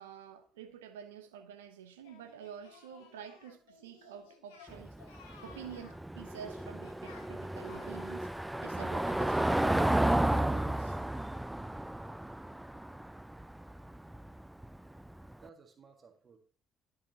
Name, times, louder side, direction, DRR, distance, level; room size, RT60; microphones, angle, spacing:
voice 1, 0.0-4.9 5.4-8.3 8.6-11.0, right 8 dB, 80° right, 0.7 m, -49 dB
Singing, 2.0-10.4, left 5 dB, 75° left, 1.0 m, -58 dB
Car passing by / Engine, 4.7-15.3, right 1 dB, 10° right, 0.3 m, -33 dB
voice 2, 15.4-16.4, right 5 dB, 40° right, 1.6 m, -61 dB
12.0 x 5.8 x 2.9 m
figure-of-eight pair, 45°, 0 cm